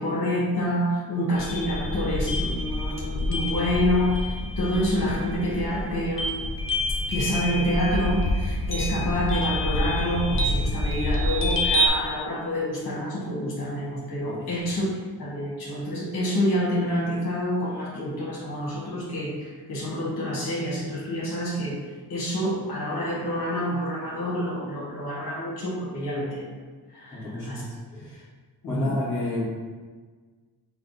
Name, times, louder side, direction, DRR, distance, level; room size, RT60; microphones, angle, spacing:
voice 1, 0.0-6.4 7.1-14.9 15.2-21.8 22.1-26.5 26.9-27.6 28.6-29.0, equal, 55° left, -6 dB, 1.3 m, -27 dB
sound 1, 1.4-11.9, left 1 dB, 35° left, 0.6 m, -27 dB
voice 2, 27.1-28.2 28.7-29.4, left 2 dB, 5° left, -14 dB, 1.2 m, -31 dB
5.6 x 2.1 x 4.0 m, 1.4 s
wide cardioid pair, 150°, 40 cm